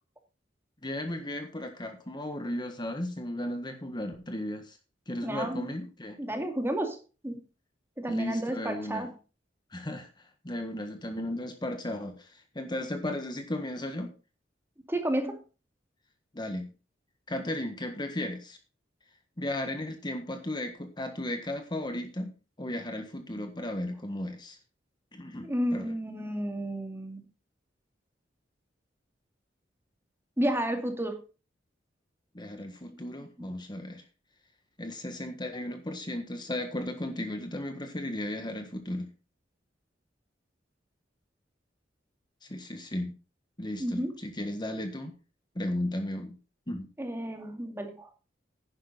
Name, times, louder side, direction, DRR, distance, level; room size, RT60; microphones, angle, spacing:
voice 1, 0.8-4.8 5.1-6.2 8.1-9.1 9.7-10.1 10.4-14.1 16.3-16.7 17.3-18.6 19.4-24.6 25.1-25.9 32.3-34.0 34.8-39.1 42.5-43.1 43.6-45.1 45.5-46.4 46.7-46.9, left 1 dB, 25° left, 6 dB, 1.5 m, -35 dB
voice 2, 5.2-5.7 6.2-7.0 7.2-7.4 8.0-9.1 14.9-15.4 25.4-27.2 30.4-31.2 32.9-33.0 43.8-44.2 47.0-48.1, right 1 dB, 15° right, 4 dB, 2.3 m, -31 dB
10.5 x 10.5 x 4.0 m, 0.31 s
head